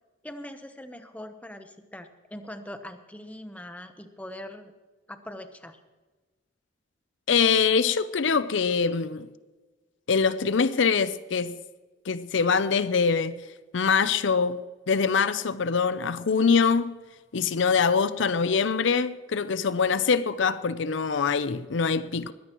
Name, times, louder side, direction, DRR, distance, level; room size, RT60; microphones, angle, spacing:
voice 1, 0.2-4.7 5.1-5.8, left 1 dB, 5° left, 0.9 m, -42 dB
voice 2, 7.3-9.3 10.1-11.6 12.1-13.4 13.7-16.9 17.3-22.3, left 5 dB, 70° left, 0.6 m, -24 dB
21.5 x 16.0 x 3.0 m
head